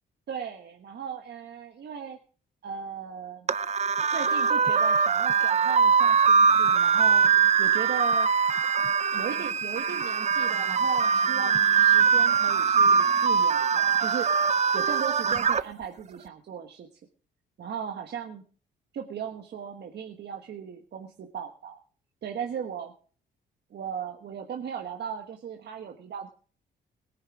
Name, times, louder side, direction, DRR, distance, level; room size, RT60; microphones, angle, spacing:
voice 1, 0.3-2.2 2.6-3.5 4.1-7.3 7.6-8.3 9.1-14.3 14.7-16.9 17.6-18.4 18.9-21.8 22.2-22.9 23.7-26.3, right 7 dB, 60° right, 4 dB, 1.4 m, -37 dB
sound 1, 3.5-15.6, right 6 dB, 35° right, 0.6 m, -22 dB
17.5 x 10.0 x 4.9 m, 0.43 s
cardioid pair, 90°, 20 cm